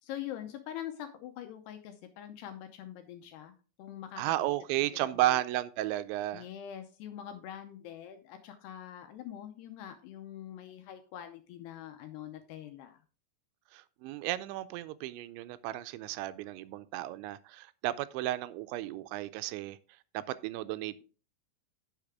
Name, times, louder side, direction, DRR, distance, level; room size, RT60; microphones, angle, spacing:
voice 1, 0.0-4.5 4.7-5.4 6.3-13.0, left 11 dB, 80° left, 2.5 m, -44 dB
voice 2, 4.2-6.4 13.7-19.8 20.1-21.0, right 15 dB, 85° right, 2.8 m, -33 dB
10.0 x 6.5 x 3.5 m
omnidirectional pair, 5.3 m